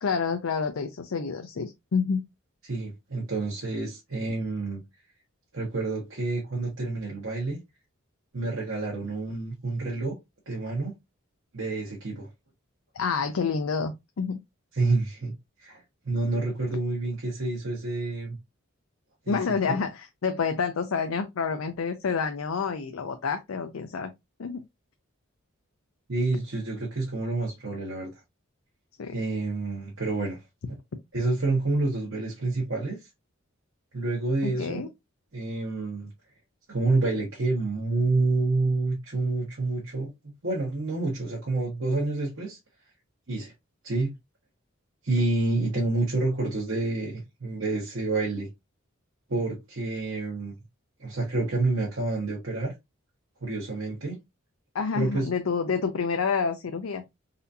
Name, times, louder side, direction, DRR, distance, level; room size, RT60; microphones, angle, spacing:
voice 1, 0.0-2.2 12.9-14.4 19.3-24.1 24.4-24.6 29.0-29.2 34.4-34.9 54.7-57.0, left 5 dB, 80° left, 0.5 m, -28 dB
voice 2, 2.6-4.8 5.5-7.6 8.3-10.2 10.5-10.9 11.5-12.3 14.7-15.3 15.6-18.4 19.2-19.4 19.7-19.8 26.1-28.1 29.1-30.4 31.1-33.0 33.9-34.8 35.3-36.1 36.7-40.1 40.4-42.6 43.3-43.5 43.8-44.1 45.0-48.5 49.3-50.5 51.0-52.7 53.4-54.2 54.9-55.3, right 3 dB, 70° right, 1.4 m, -28 dB
4.1 x 2.6 x 2.6 m
head